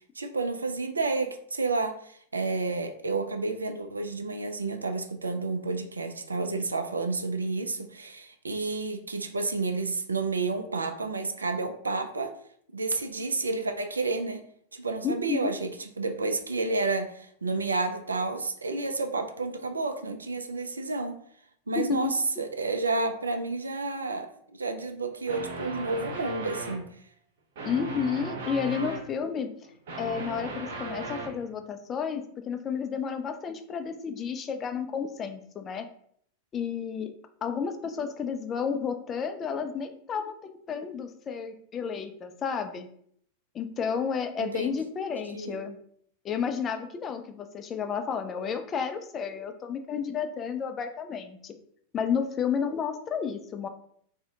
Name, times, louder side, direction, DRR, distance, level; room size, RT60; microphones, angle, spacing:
voice 1, 0.2-12.3 12.7-14.4 14.7-21.2 21.7-26.8 44.4-44.7 45.3-45.6, right 3 dB, 75° right, 7 dB, 0.3 m, -30 dB
voice 2, 15.0-15.5 21.8-22.1 27.6-29.5 30.0-35.9 36.5-37.1 37.4-42.9 43.5-45.8 46.2-51.5 51.9-53.7, left 6 dB, 25° left, 7 dB, 0.3 m, -31 dB
sound 1, 25.2-26.9 27.6-29.1 29.6-31.4, right 3 dB, 55° right, 0.9 m, -37 dB
2.6 x 2.0 x 3.6 m, 0.65 s
figure-of-eight pair, 90°, 0 cm